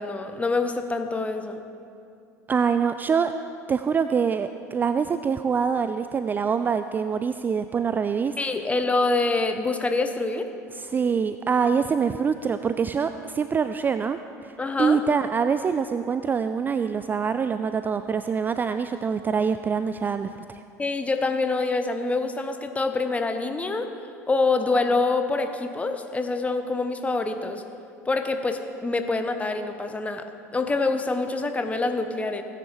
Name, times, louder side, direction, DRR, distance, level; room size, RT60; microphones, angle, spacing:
voice 1, 0.0-1.6 8.4-10.5 14.6-15.0 20.8-23.9 24.3-27.6 28.1-30.3 30.5-32.4, left 3 dB, 15° left, 7 dB, 0.9 m, -26 dB
voice 2, 2.5-3.3 3.7-8.3 10.7-14.5 14.8-20.3, right 6 dB, 20° right, 10 dB, 0.3 m, -25 dB
17.0 x 9.6 x 3.3 m, 2.5 s
figure-of-eight pair, 70°, 9 cm